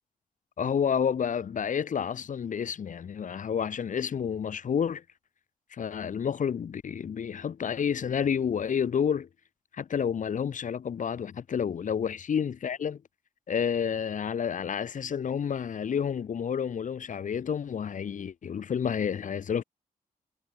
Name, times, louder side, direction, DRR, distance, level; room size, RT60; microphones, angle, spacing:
voice 1, 0.6-5.0 5.7-9.3 9.7-13.0 13.5-19.6, left 7 dB, 65° left, 2.2 m, -30 dB
wide cardioid pair, 110°, 14 cm